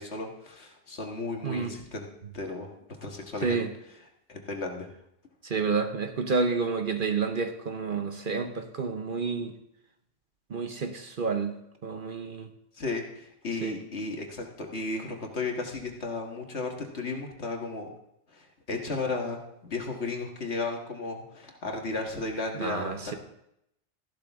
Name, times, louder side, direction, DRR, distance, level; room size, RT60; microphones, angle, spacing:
voice 1, 0.0-2.1 2.3-2.7 3.0-3.7 4.3-4.9 12.7-17.9 18.3-23.2, left 3 dB, 65° left, 2 dB, 1.9 m, -34 dB
voice 2, 1.4-1.7 3.4-3.7 5.4-9.5 10.5-11.5 11.8-12.5 13.6-13.7 22.6-23.1, right 4 dB, 50° right, 6 dB, 1.0 m, -29 dB
14.0 x 11.5 x 3.6 m, 0.78 s
omnidirectional pair, 1.2 m